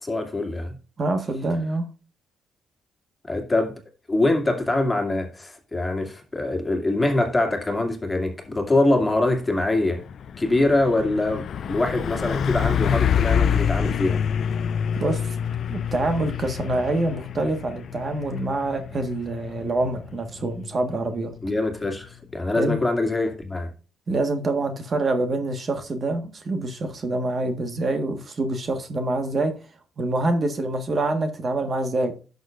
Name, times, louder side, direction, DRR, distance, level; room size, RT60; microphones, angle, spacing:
voice 1, 0.0-0.8 3.3-3.7 4.1-10.0 10.4-14.2 21.4-23.7, left 2 dB, 15° left, 2.4 m, -24 dB
voice 2, 1.0-1.9 15.0-15.2 15.7-21.3 22.5-22.8 24.1-29.5 30.0-32.1, right 2 dB, 40° right, 1.5 m, -26 dB
Truck, 9.0-9.3 9.6-22.2, left 7 dB, 60° left, 0.4 m, -27 dB
11.0 x 6.6 x 2.5 m
cardioid pair, 90°, 0 cm